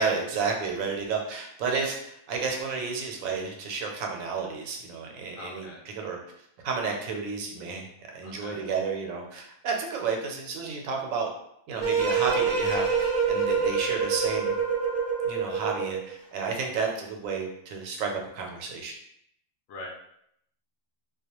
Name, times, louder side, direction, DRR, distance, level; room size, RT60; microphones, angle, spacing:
voice 1, 0.0-6.2 6.6-11.3 11.7-14.6 15.2-18.9, right 5 dB, 80° right, 1 dB, 1.0 m, -31 dB
voice 2, 5.3-5.8 8.2-8.6 19.7-19.9, left 2 dB, 65° left, -2 dB, 0.8 m, -42 dB
sound 1, 11.8-16.1, right 5 dB, 30° right, 0.6 m, -26 dB
2.3 x 2.1 x 2.9 m, 0.74 s
omnidirectional pair, 1.4 m